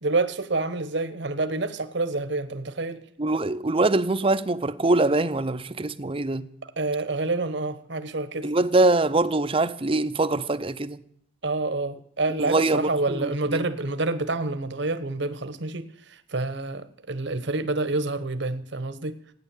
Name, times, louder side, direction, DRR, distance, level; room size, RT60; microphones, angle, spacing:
voice 1, 0.0-3.0 6.8-8.5 11.4-19.1, right 2 dB, 60° right, 1.1 m, -28 dB
voice 2, 3.2-6.5 8.4-11.0 12.4-13.6, right 2 dB, 25° right, 0.7 m, -23 dB
16.0 x 9.8 x 8.4 m
head